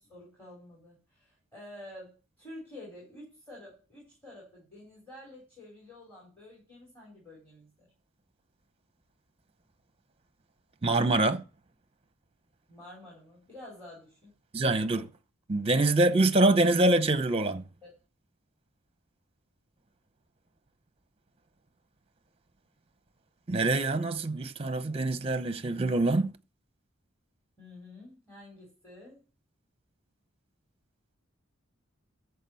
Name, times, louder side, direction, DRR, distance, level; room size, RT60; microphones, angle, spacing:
voice 1, 0.0-7.9 12.7-14.3 17.8-17.9 27.6-29.2, left 1 dB, 10° left, 5.0 m, -49 dB
voice 2, 10.8-11.4 14.5-15.1 15.5-17.6 23.5-26.3, right 2 dB, 30° right, 0.8 m, -25 dB
14.0 x 4.8 x 7.0 m
head